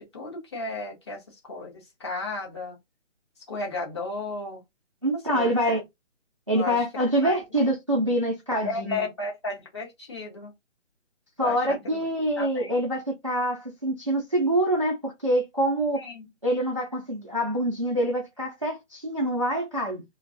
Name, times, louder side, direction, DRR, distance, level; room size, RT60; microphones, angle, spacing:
voice 1, 0.0-2.8 3.5-4.6 5.3-5.6 6.5-6.8 7.2-7.4 8.6-10.5 11.4-12.0 12.4-12.7 16.0-16.3, left 3 dB, 25° left, 0.7 m, -34 dB
voice 2, 5.0-5.8 6.5-9.0 11.4-16.0 16.4-20.0, right 1 dB, 25° right, 0.4 m, -25 dB
2.5 x 2.2 x 2.4 m
figure-of-eight pair, 145°, 38 cm